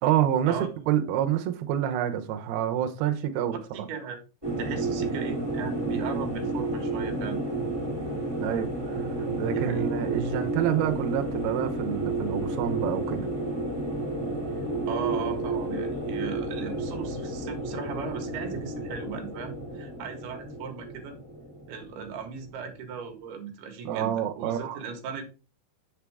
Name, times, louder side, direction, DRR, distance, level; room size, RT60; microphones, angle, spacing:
voice 1, 0.0-3.9 8.3-13.3 23.9-24.8, right 10 dB, 90° right, 2.2 m, -28 dB
voice 2, 3.7-4.2 4.6-7.4 9.5-9.9 14.9-21.2 21.7-25.2, right 6 dB, 65° right, 3.2 m, -37 dB
sound 1, 4.4-22.8, right 2 dB, 20° right, 0.7 m, -31 dB
7.3 x 6.9 x 3.4 m
omnidirectional pair, 5.5 m